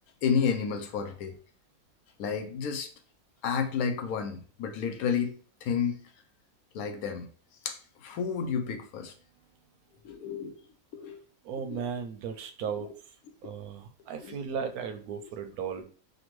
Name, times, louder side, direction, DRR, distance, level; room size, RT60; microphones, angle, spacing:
voice 1, 0.2-1.4 2.2-2.9 3.4-5.3 5.6-6.0 6.7-7.3 7.6-9.1 10.0-10.5 10.9-11.2 11.6-11.9 12.8-12.9 13.4-13.5 14.2-14.4, left 6 dB, 90° left, 1.1 m, -31 dB
voice 2, 11.4-12.9 13.4-15.8, right 6 dB, 90° right, 1.1 m, -36 dB
5.1 x 2.2 x 3.0 m
omnidirectional pair, 1.5 m